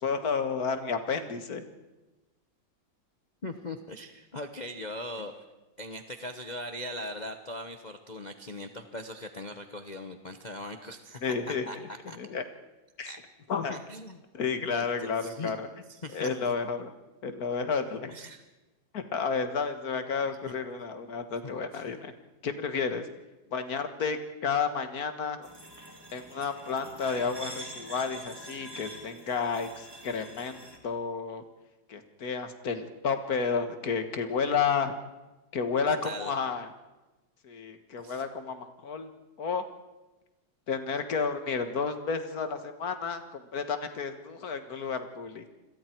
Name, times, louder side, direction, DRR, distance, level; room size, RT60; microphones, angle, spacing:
voice 1, 0.0-1.6 11.2-12.4 13.0-13.1 13.5-13.8 14.3-15.7 16.1-16.9 17.2-18.1 18.9-22.1 22.4-23.1 23.5-25.5 26.1-31.4 31.9-34.9 35.5-36.7 37.4-39.1 39.4-39.6 40.7-45.5, left 5 dB, 50° left, 9 dB, 1.9 m, -31 dB
voice 2, 3.4-5.4 5.8-11.8 12.1-12.2 13.1-13.2 13.7-14.2 14.7-15.5 15.9-16.3 18.1-18.4 21.4-21.8 35.9-36.3 38.0-38.2, left 1 dB, 30° left, 6 dB, 0.9 m, -40 dB
sound 1, 25.4-30.8, equal, 10° right, 2.7 m, -45 dB
29.0 x 21.5 x 4.6 m, 1.1 s
omnidirectional pair, 2.1 m